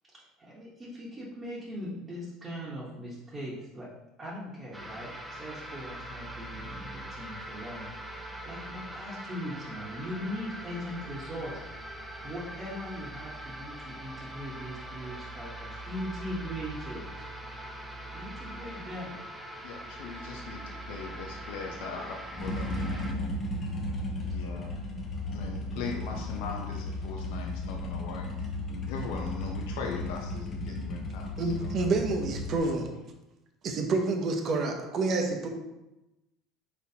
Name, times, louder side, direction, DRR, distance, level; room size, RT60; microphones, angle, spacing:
voice 1, 0.1-3.9 4.2-11.6 12.2-17.1 18.1-19.2 22.0-22.1 24.2-24.3 25.2-25.9, equal, 25° right, -7 dB, 1.1 m, -40 dB
sound 1, 4.7-23.1, right 1 dB, 10° right, 0.6 m, -42 dB
voice 2, 19.6-22.0 22.4-23.3 23.6-23.8 24.3-24.7 25.3-31.7, left 5 dB, 80° left, 1 dB, 0.5 m, -40 dB
sound 2, 22.4-32.6, left 2 dB, 30° left, 0.8 m, -35 dB
voice 3, 31.4-32.9 33.6-35.5, right 3 dB, 45° right, 4 dB, 0.7 m, -28 dB
4.4 x 4.1 x 2.8 m, 0.99 s
supercardioid pair, 120°, 0 cm